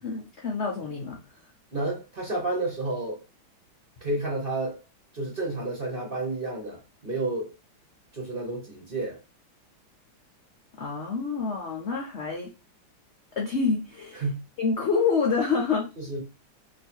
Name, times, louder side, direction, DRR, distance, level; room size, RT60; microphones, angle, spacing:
voice 1, 0.0-1.4 10.8-12.5 13.4-14.2 14.6-15.9, left 5 dB, 65° left, 0.6 m, -27 dB
voice 2, 1.7-3.2 4.0-4.8 5.1-7.5 8.1-9.2 14.2-14.4 16.0-16.2, right 2 dB, 35° right, 0.9 m, -30 dB
3.1 x 2.7 x 4.4 m
omnidirectional pair, 2.1 m